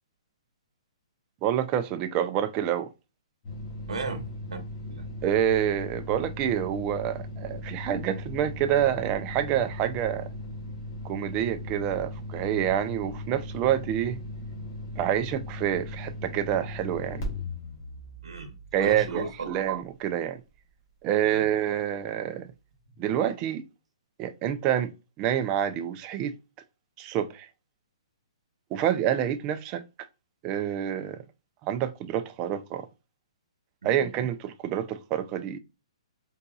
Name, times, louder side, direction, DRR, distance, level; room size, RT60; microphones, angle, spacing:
voice 1, 1.4-2.9 5.2-10.3 11.0-14.2 15.0-17.4 18.7-20.4 21.0-22.5 23.0-23.6 24.2-26.3 27.0-27.5 28.7-29.8 30.4-31.2 31.6-32.9 33.8-35.6, right 10 dB, 25° right, 0.3 m, -27 dB
sound 1, 3.4-19.8, left 1 dB, 35° left, 1.3 m, -38 dB
voice 2, 3.9-5.1 18.2-19.5 21.2-21.5 33.8-33.9, right 3 dB, 80° right, 1.0 m, -36 dB
3.8 x 2.7 x 2.3 m
hypercardioid pair, 150°, 3 cm